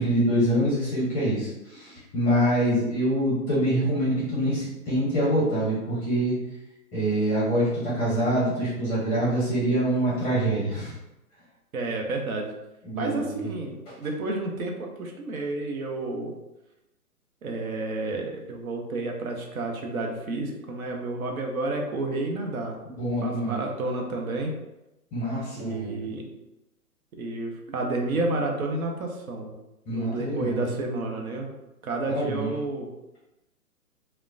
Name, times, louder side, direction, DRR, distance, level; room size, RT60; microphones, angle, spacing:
voice 1, 0.0-6.4 6.9-10.9 12.8-13.4 13.9-14.0 23.0-23.6 25.1-26.0 29.9-30.6 32.1-32.5, right 1 dB, 15° left, -9 dB, 0.7 m, -25 dB
voice 2, 11.7-12.5 12.9-16.3 17.4-22.8 23.2-24.5 25.6-26.3 27.1-29.5 29.9-31.5 31.8-32.9, right 2 dB, 65° right, 2 dB, 0.7 m, -30 dB
3.0 x 2.1 x 2.5 m, 0.94 s
hypercardioid pair, 140°, 46 cm